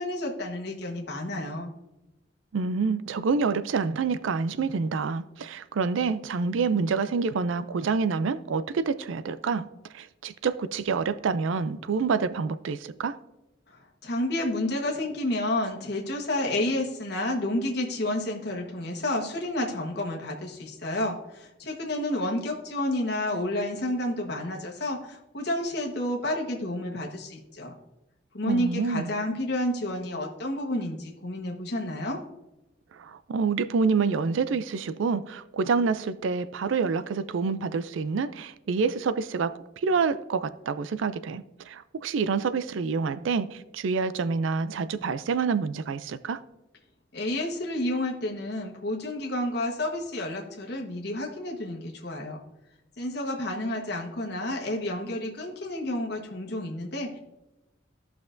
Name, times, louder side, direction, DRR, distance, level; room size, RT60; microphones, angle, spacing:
voice 1, 0.0-1.7 13.7-27.7 28.3-32.2 47.1-52.4 53.0-57.2, left 1 dB, 55° left, 1.3 m, -30 dB
voice 2, 2.5-9.7 9.9-13.2 28.5-29.1 33.0-46.4, right 5 dB, 80° right, 0.4 m, -27 dB
14.5 x 5.8 x 2.6 m
head